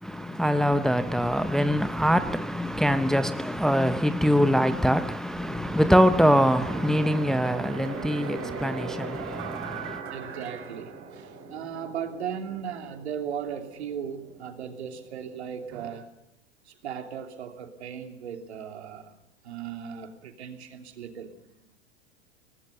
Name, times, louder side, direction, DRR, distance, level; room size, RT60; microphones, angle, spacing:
voice 1, 0.0-10.0, equal, ahead, 0.8 m, -23 dB
sound 1, 5.3-15.9, right 5 dB, 40° right, 5.5 m, -40 dB
voice 2, 10.1-16.1 16.6-19.1 19.4-21.4, right 8 dB, 75° right, 3.2 m, -37 dB
23.5 x 19.0 x 6.8 m
hypercardioid pair, 95°, 33 cm